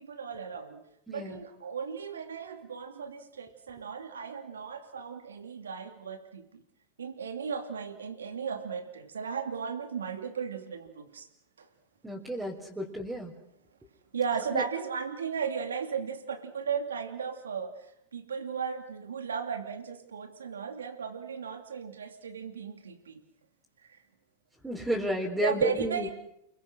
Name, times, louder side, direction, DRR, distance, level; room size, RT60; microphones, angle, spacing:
voice 1, 0.0-6.6 7.0-11.3 11.6-11.7 14.1-17.9 18.1-23.2 25.4-26.1, right 6 dB, 90° right, 7 dB, 2.7 m, -35 dB
voice 2, 1.1-1.4 12.0-13.3 14.5-14.6 24.6-26.1, equal, 10° right, -2 dB, 4.5 m, -32 dB
29.5 x 23.5 x 6.3 m, 0.77 s
hypercardioid pair, 105°, 0 cm